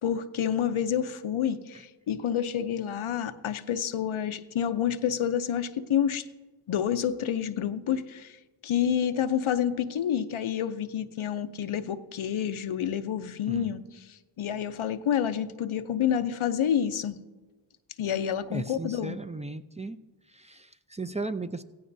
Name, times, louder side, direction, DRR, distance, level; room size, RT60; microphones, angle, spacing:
voice 1, 0.0-6.3 6.7-8.3 8.6-13.8 14.4-17.2 18.0-19.2, left 9 dB, 85° left, 10 dB, 0.7 m, -28 dB
voice 2, 18.5-20.0 20.3-21.6, right 3 dB, 15° right, 9 dB, 0.5 m, -36 dB
16.5 x 15.5 x 2.7 m, 1.2 s
cardioid pair, 45°, 48 cm